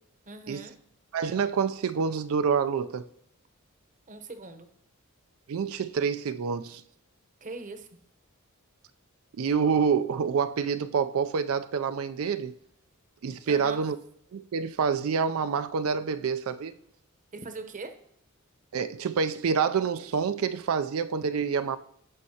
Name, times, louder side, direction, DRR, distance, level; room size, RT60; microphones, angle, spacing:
voice 1, 0.3-0.7 4.1-4.7 7.4-7.9 13.4-13.8 17.3-17.9, right 3 dB, 35° right, 0.8 m, -40 dB
voice 2, 1.1-3.1 5.5-6.8 9.4-12.5 13.2-14.0 14.3-16.7 18.7-21.8, right 6 dB, 70° right, 0.4 m, -27 dB
16.0 x 5.4 x 2.8 m
head